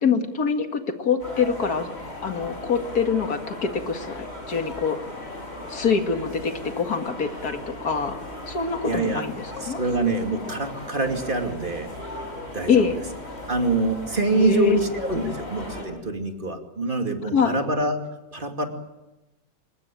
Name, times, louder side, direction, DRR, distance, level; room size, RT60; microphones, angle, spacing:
voice 1, 0.0-1.9 2.2-5.0 5.7-8.2 8.5-9.3 9.7-9.8 12.7-13.0 14.3-14.8 15.2-15.3 17.2-17.6, left 6 dB, 80° left, 7 dB, 2.5 m, -24 dB
sound 1, 1.2-15.8, left 1 dB, 45° left, 6.9 m, -37 dB
voice 2, 8.8-9.2 9.6-11.9 12.5-12.9 13.5-18.0 18.3-18.7, right 2 dB, 35° right, 5 dB, 2.6 m, -25 dB
24.5 x 20.5 x 9.0 m, 1.0 s
omnidirectional pair, 1.6 m